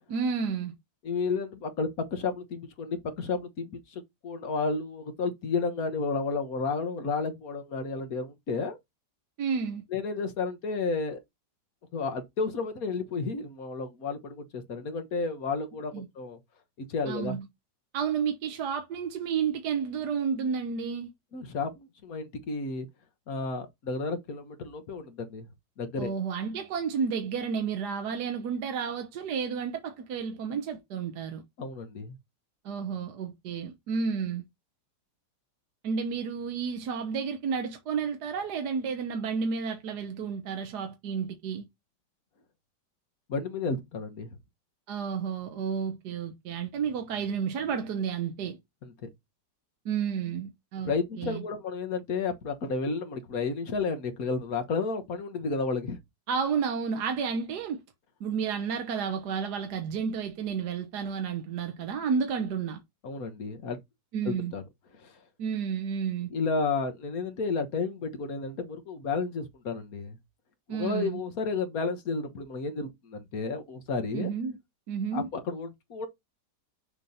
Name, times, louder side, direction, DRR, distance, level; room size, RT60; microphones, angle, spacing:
voice 1, 0.1-0.7 9.4-9.8 15.9-16.1 17.1-17.5 17.9-21.1 26.0-31.4 32.6-34.4 35.8-41.6 44.9-48.6 49.8-51.4 56.3-57.8 58.2-62.8 64.1-64.5 65.4-66.3 70.7-71.2 74.1-74.6 74.9-75.3, right 6 dB, 70° right, 1.5 m, -31 dB
voice 2, 1.0-8.8 9.9-11.2 11.9-16.4 16.8-17.4 21.3-22.9 23.3-25.5 25.8-26.1 31.6-32.1 43.3-44.3 48.8-48.9 50.8-56.0 63.0-63.8 64.2-64.6 65.0-65.1 66.3-70.2 70.7-74.3 75.1-76.1, left 4 dB, 60° left, 1.5 m, -32 dB
6.7 x 2.9 x 5.3 m
omnidirectional pair, 1.8 m